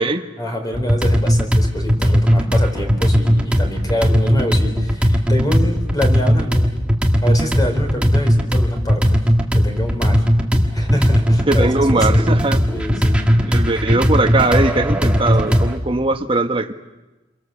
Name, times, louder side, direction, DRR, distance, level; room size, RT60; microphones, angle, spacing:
voice 1, 0.4-6.9 7.2-9.2 9.5-10.2 10.7-12.2 12.7-13.2 15.4-15.6, left 1 dB, 20° left, 4 dB, 4.2 m, -26 dB
sound 1, 0.7-15.8, equal, 5° right, 1.8 m, -17 dB
voice 2, 11.5-12.6 13.5-16.7, right 2 dB, 30° right, 6 dB, 1.3 m, -19 dB
29.0 x 23.5 x 7.2 m, 1.1 s
head